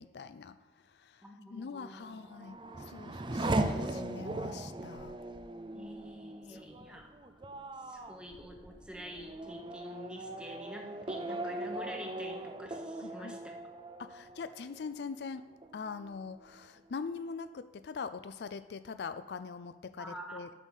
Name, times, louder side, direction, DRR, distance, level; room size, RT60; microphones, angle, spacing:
voice 1, 0.0-5.2 6.5-6.6 13.0-13.4 14.0-15.4 15.7-20.5, left 5 dB, 65° left, 12 dB, 0.4 m, -43 dB
voice 2, 1.2-2.1 5.7-7.2 7.8-13.4 20.0-20.5, equal, 5° right, 2 dB, 1.0 m, -47 dB
Race car auto racing / Accelerating revving vroom, 2.0-15.2 15.6-16.3, right 2 dB, 25° right, 0.5 m, -39 dB
9.1 x 5.7 x 6.3 m, 1.1 s
head